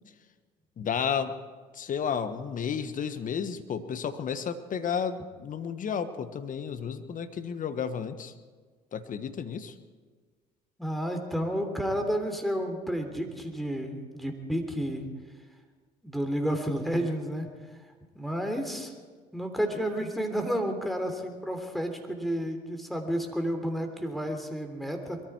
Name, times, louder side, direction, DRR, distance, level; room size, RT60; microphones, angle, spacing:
voice 1, 0.8-1.3 1.7-8.3 8.9-9.7, left 7 dB, 40° left, 11 dB, 1.3 m, -32 dB
voice 2, 10.8-15.1 16.0-17.5 18.1-18.9 19.3-25.2, equal, ahead, 5 dB, 3.2 m, -31 dB
22.5 x 14.0 x 4.6 m, 1.5 s
hypercardioid pair, 65°, 20 cm